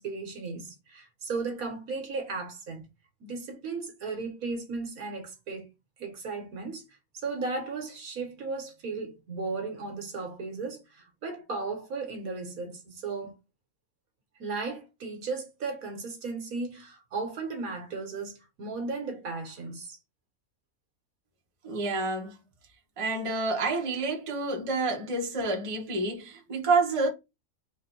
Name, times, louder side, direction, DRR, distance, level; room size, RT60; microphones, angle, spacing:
voice 1, 0.0-2.8 3.2-5.7 6.0-6.8 7.1-13.3 14.4-20.0, right 4 dB, 70° right, 1.6 m, -35 dB
voice 2, 21.6-22.4 23.0-27.1, right 3 dB, 25° right, 0.9 m, -28 dB
4.2 x 2.6 x 4.4 m
omnidirectional pair, 1.6 m